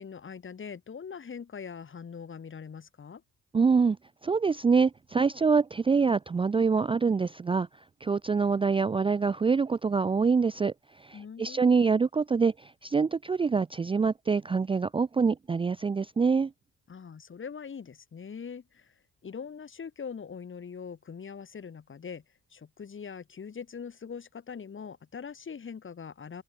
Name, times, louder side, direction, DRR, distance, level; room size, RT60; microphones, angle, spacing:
voice 1, 0.0-3.2 11.1-11.9 16.9-22.2 22.5-26.4, left 6 dB, 40° left, 4.0 m, -42 dB
voice 2, 3.5-4.0 4.2-7.7 8.0-16.5, right 5 dB, 20° right, 0.4 m, -25 dB
open air
cardioid pair, 90°, 30 cm